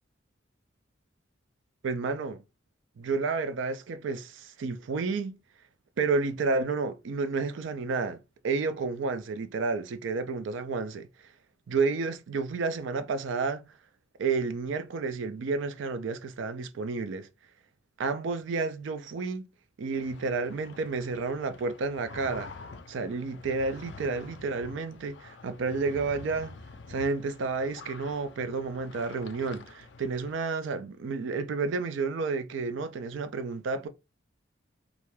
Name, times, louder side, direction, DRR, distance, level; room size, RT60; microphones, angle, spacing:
voice 1, 1.8-2.4 3.0-5.4 6.0-8.2 8.4-11.1 11.7-13.7 14.2-17.3 18.0-19.5 19.8-22.5 22.9-26.6 26.9-33.9, right 4 dB, 70° right, 0.4 m, -31 dB
sound 1, 19.9-30.3, left 4 dB, 60° left, 0.4 m, -48 dB
2.5 x 2.2 x 3.1 m
head